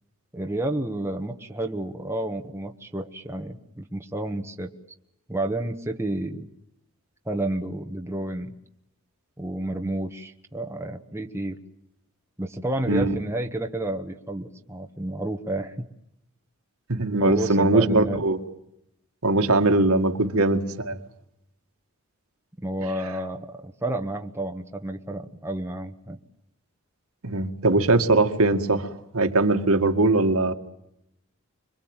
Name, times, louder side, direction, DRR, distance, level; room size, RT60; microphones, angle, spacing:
voice 1, 0.3-4.7 5.3-6.5 7.2-8.5 9.4-11.6 12.4-15.9 17.2-18.3 22.6-26.2, right 1 dB, 10° right, 4 dB, 1.4 m, -30 dB
voice 2, 16.9-18.4 19.2-21.0 27.2-30.5, right 2 dB, 75° right, 6 dB, 2.1 m, -21 dB
26.5 x 23.0 x 9.0 m, 0.80 s
head